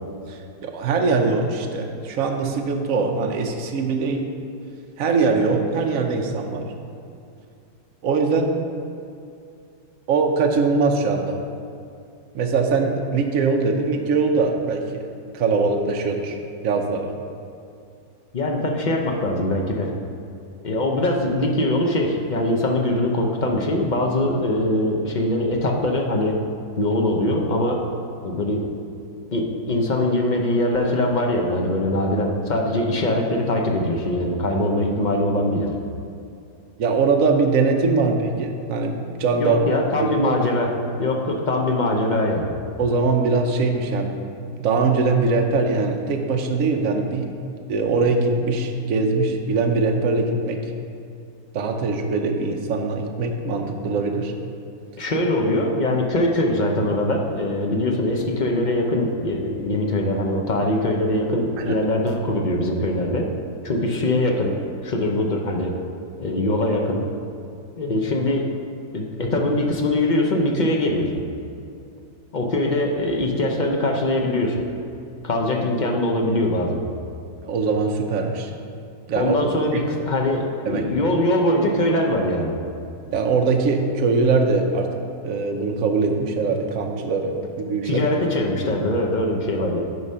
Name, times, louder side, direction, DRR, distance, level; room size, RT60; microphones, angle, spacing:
voice 1, 0.3-4.2 5.0-6.7 8.0-8.5 10.1-11.4 12.3-14.8 15.3-16.4 16.6-17.1 36.8-39.7 40.0-40.3 42.8-44.1 44.6-47.3 47.7-50.6 51.5-54.3 61.6-61.8 77.4-78.5 79.1-79.3 79.7-79.8 80.7-80.8 83.1-84.9 85.2-88.0 89.6-89.7, right 4 dB, 60° right, 3 dB, 1.1 m, -22 dB
voice 2, 18.3-19.9 20.6-26.4 26.8-27.8 28.2-28.7 29.3-35.8 38.0-38.1 39.4-40.7 41.0-42.5 55.0-63.3 63.6-64.6 64.8-65.7 66.2-67.0 67.8-68.5 68.9-71.2 72.3-74.6 75.2-76.8 79.1-82.6 87.8-89.8, left 1 dB, 40° left, 1 dB, 0.7 m, -22 dB
9.5 x 4.9 x 5.6 m, 2.5 s
omnidirectional pair, 1.7 m